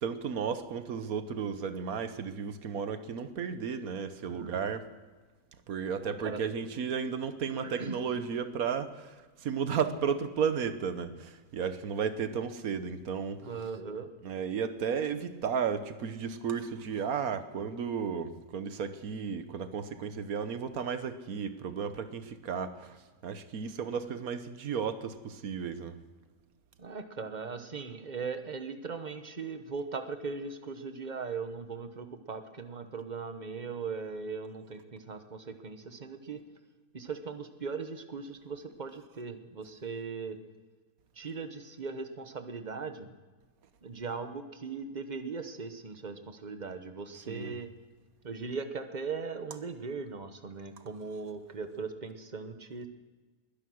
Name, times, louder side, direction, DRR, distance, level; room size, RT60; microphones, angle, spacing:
voice 1, 0.0-4.9 5.7-13.4 14.2-23.0 23.2-26.0 47.3-47.6, right 6 dB, 85° right, 11 dB, 1.5 m, -34 dB
voice 2, 4.3-4.7 6.0-6.4 7.6-8.0 13.4-14.1 26.8-36.4 36.9-40.4 41.1-43.1 43.8-47.7 48.2-52.9, right 5 dB, 35° right, 8 dB, 1.1 m, -39 dB
21.0 x 10.5 x 6.3 m, 1.3 s
omnidirectional pair, 1.5 m